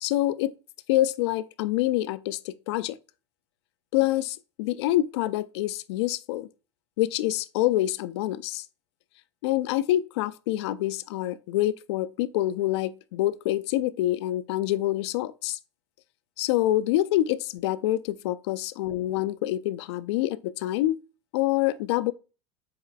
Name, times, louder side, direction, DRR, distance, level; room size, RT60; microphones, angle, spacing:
voice 1, 0.0-0.5 0.9-3.0 3.9-6.5 7.0-8.6 9.4-15.6 16.4-21.0 21.3-22.1, left 15 dB, 65° left, 0.4 m, -26 dB
7.6 x 3.2 x 2.2 m
hypercardioid pair, 80°, 15 cm